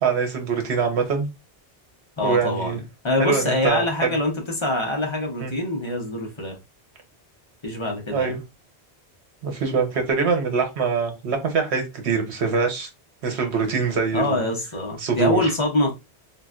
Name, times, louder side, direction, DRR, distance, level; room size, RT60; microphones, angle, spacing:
voice 1, 0.0-1.3 2.2-2.8 3.2-4.1 5.4-5.5 8.1-8.4 9.4-12.9 13.2-14.4 15.0-15.4, right 5 dB, 80° right, 1.1 m, -23 dB
voice 2, 2.2-6.6 7.6-8.4 14.1-16.0, left 2 dB, 30° left, 0.6 m, -25 dB
3.1 x 2.5 x 2.4 m
omnidirectional pair, 1.1 m